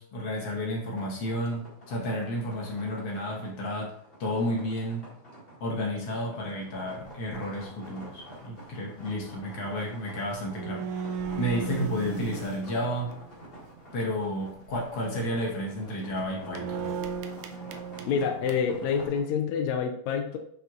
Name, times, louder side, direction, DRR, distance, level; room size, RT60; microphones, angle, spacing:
voice 1, 0.0-3.9 4.2-5.1 5.6-13.1 13.9-16.9, equal, 55° left, -2 dB, 1.8 m, -32 dB
sound 1, 0.9-19.2, right 1 dB, 20° left, 1.6 m, -48 dB
sound 2, 7.0-7.3 7.9-8.1 10.0-10.1 10.3-13.7 14.5-14.8 15.2-15.4 15.8-19.1, right 6 dB, 80° right, 1.7 m, -37 dB
voice 2, 18.0-20.4, left 6 dB, 80° left, 4 dB, 1.6 m, -27 dB
7.4 x 5.5 x 2.4 m, 0.67 s
omnidirectional pair, 3.8 m